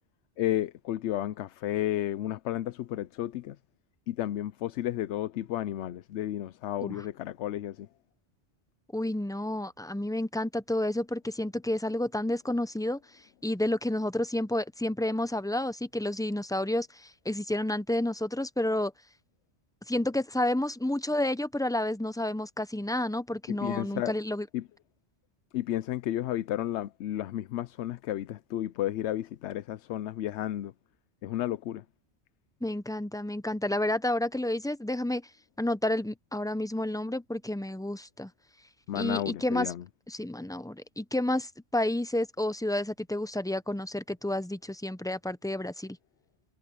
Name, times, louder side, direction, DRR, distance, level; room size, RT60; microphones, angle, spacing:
voice 1, 0.4-3.6 4.1-7.9 23.5-24.1 24.5-24.7 25.5-30.7 31.2-31.8 38.9-39.8, left 12 dB, 85° left, 0.9 m, -32 dB
voice 2, 8.9-13.0 13.4-18.9 19.9-24.5 32.6-35.3 35.6-38.3 39.0-39.7 40.1-46.0, left 1 dB, 5° left, 0.5 m, -30 dB
omnidirectional pair, 1.1 m